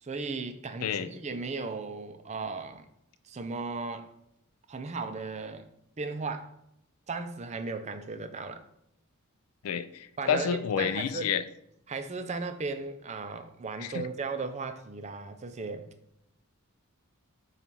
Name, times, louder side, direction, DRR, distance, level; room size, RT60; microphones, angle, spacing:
voice 1, 0.0-2.9 3.2-4.1 4.7-5.7 6.0-6.5 7.1-8.7 10.2-11.3 11.9-15.9, right 4 dB, 30° right, 0.5 m, -36 dB
voice 2, 0.8-1.1 9.6-11.4 13.8-14.0, left 8 dB, 75° left, 0.4 m, -29 dB
7.2 x 2.4 x 5.3 m
head